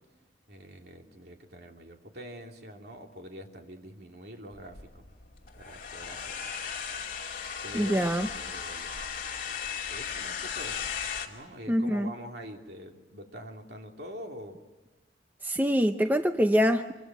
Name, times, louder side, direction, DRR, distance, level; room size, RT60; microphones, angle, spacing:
voice 1, 0.5-5.0 5.6-6.5 6.9-7.3 7.6-9.0 9.9-10.8 11.3-14.6, equal, 60° right, 2 dB, 2.9 m, -45 dB
sound 1, 4.5-11.3, left 7 dB, 45° left, 2.5 m, -36 dB
voice 2, 7.7-8.3 11.7-12.1 15.4-16.9, equal, 10° right, 7 dB, 0.7 m, -24 dB
26.0 x 25.0 x 6.2 m, 1.2 s
head